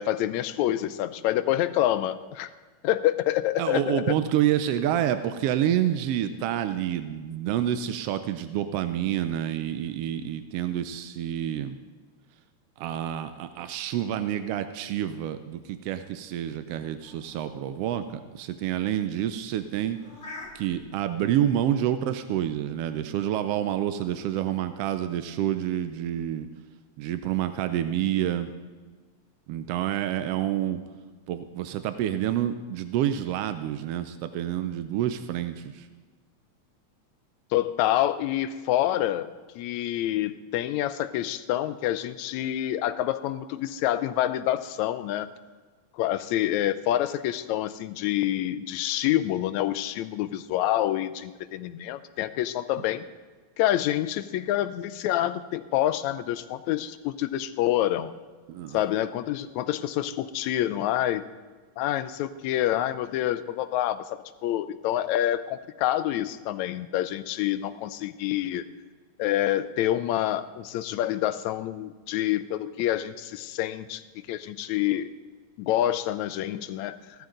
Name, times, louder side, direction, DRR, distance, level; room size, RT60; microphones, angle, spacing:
voice 1, 0.0-2.5 2.8-4.2 37.5-45.3 45.9-53.1 53.6-58.1 58.7-61.3 61.8-68.6 69.2-74.0 74.3-75.1 75.6-77.0, left 13 dB, 80° left, 13 dB, 1.9 m, -27 dB
voice 2, 3.6-11.8 12.8-20.0 20.5-26.5 27.0-28.5 29.5-30.8 31.3-35.9 58.5-58.8, right 11 dB, 80° right, 10 dB, 1.4 m, -28 dB
sound 1, 15.6-20.9, left 2 dB, 25° left, 2.0 m, -48 dB
16.0 x 13.0 x 3.9 m, 1.4 s
omnidirectional pair, 3.3 m